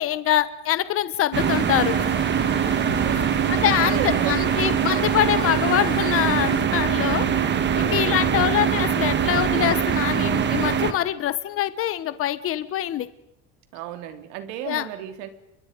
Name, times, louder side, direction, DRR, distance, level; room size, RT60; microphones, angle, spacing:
voice 1, 0.0-2.1 3.5-7.3 7.8-13.1 14.7-14.8, left 12 dB, 35° left, 14 dB, 1.1 m, -24 dB
sound 1, 1.3-10.9, right 8 dB, 30° right, 1.7 m, -22 dB
sound 2, 1.4-6.6, left 12 dB, 85° left, 2.7 m, -41 dB
voice 2, 2.7-4.8 5.1-5.2 7.7-8.4 13.7-15.3, right 11 dB, 85° right, 9 dB, 3.0 m, -35 dB
30.0 x 23.0 x 5.2 m, 0.78 s
cardioid pair, 150°, 37 cm